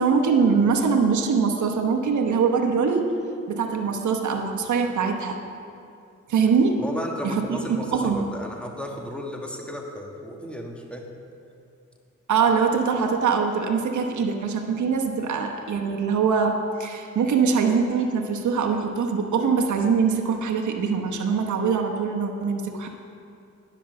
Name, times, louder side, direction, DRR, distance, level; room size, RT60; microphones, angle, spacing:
voice 1, 0.0-3.1 3.5-5.4 6.3-6.8 7.2-8.2 12.3-22.9, right 5 dB, 70° right, 3 dB, 1.0 m, -23 dB
voice 2, 6.8-11.0, equal, 5° left, 1 dB, 1.5 m, -34 dB
10.0 x 5.4 x 6.6 m, 2.5 s
cardioid pair, 60°, 31 cm